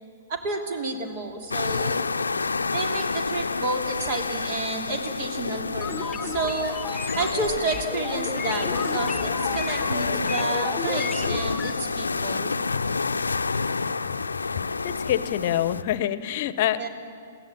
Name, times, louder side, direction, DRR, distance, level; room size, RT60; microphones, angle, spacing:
voice 1, 0.3-2.0 2.7-6.8 7.2-12.5 16.8-16.9, right 3 dB, 45° right, 3 dB, 2.8 m, -30 dB
sound 1, 1.5-15.8, left 4 dB, 80° left, 0.6 m, -28 dB
sound 2, 5.8-11.7, left 5 dB, 15° left, 1.3 m, -34 dB
voice 2, 14.8-16.9, left 12 dB, 50° left, 15 dB, 0.9 m, -26 dB
22.5 x 16.5 x 7.7 m, 2.5 s
figure-of-eight pair, 110°, 0 cm